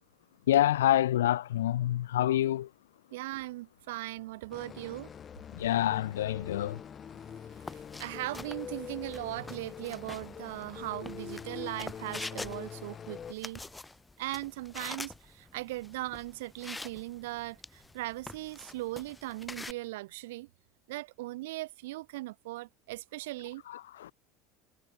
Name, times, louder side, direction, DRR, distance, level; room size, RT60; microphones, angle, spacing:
voice 1, 0.5-2.7 5.5-6.8 23.7-24.1, left 13 dB, 85° left, 0.3 m, -27 dB
voice 2, 3.1-5.1 7.7-13.6 14.2-20.5 20.9-23.6, right 19 dB, 75° right, 0.9 m, -39 dB
sound 1, 4.5-13.3, left 7 dB, 35° left, 2.0 m, -44 dB
sound 2, 7.5-19.7, left 2 dB, 10° left, 4.2 m, -46 dB
hypercardioid pair, 80°, 0 cm